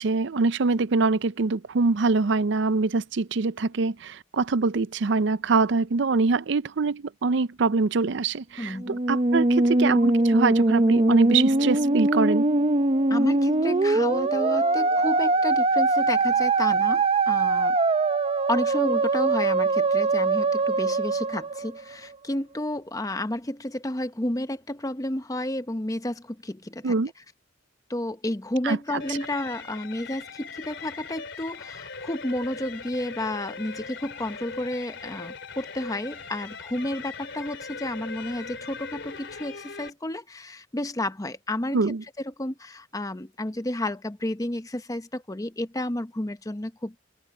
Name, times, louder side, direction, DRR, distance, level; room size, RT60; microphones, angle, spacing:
voice 1, 0.0-12.5 26.8-27.1 28.6-28.8 41.7-42.0, right 4 dB, 65° right, 0.5 m, -24 dB
voice 2, 8.6-9.0 13.1-17.8 18.5-27.0 27.9-42.0 42.2-46.9, left 1 dB, 20° left, 0.9 m, -31 dB
Musical instrument, 8.8-22.2, right 2 dB, 30° right, 0.7 m, -22 dB
sound 1, 29.0-39.9, left 4 dB, 65° left, 4.4 m, -40 dB
head